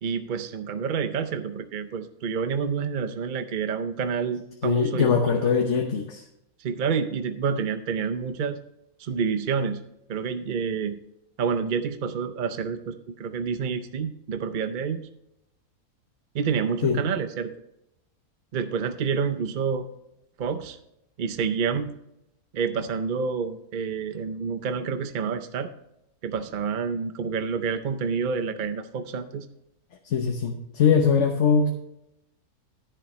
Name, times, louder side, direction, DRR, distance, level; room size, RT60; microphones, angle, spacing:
voice 1, 0.0-5.5 6.6-8.6 9.0-9.8 10.1-11.0 11.4-15.1 16.3-17.5 18.5-19.9 20.4-20.8 21.2-21.9 22.5-25.7 26.2-29.5, right 6 dB, 60° right, 10 dB, 0.5 m, -28 dB
voice 2, 4.6-6.2 16.8-17.0 30.0-31.7, left 6 dB, 55° left, 3 dB, 1.2 m, -22 dB
10.5 x 10.0 x 3.1 m, 0.82 s
omnidirectional pair, 1.6 m